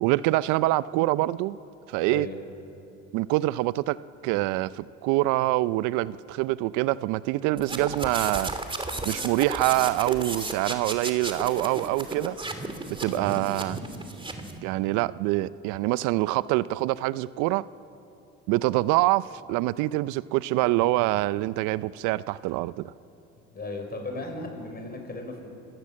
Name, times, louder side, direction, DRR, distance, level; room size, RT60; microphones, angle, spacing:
voice 1, 0.0-1.6 1.9-2.3 3.1-4.0 4.2-8.5 9.1-12.4 13.0-13.8 14.6-17.6 18.5-22.9, right 18 dB, 70° right, 18 dB, 0.6 m, -25 dB
sound 1, 7.6-14.6, right 2 dB, 15° right, 2.9 m, -34 dB
voice 2, 13.1-13.4 23.5-25.5, left 2 dB, 30° left, 3 dB, 6.2 m, -36 dB
26.0 x 17.0 x 7.6 m, 2.9 s
hypercardioid pair, 75°, 31 cm